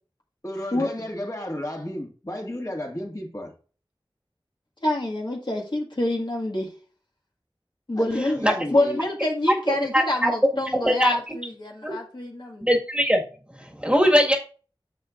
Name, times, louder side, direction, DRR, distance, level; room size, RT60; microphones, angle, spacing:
voice 1, 0.4-3.5 7.9-9.0, left 1 dB, 35° left, 2.2 m, -32 dB
voice 2, 4.8-6.7 7.9-8.4 8.7-12.7, left 1 dB, 55° left, 1.9 m, -26 dB
voice 3, 9.9-10.3 10.8-11.1 11.8-12.0 12.6-13.2 13.8-14.4, equal, 10° right, 1.8 m, -20 dB
10.0 x 7.0 x 2.5 m
wide cardioid pair, 50°, 9 cm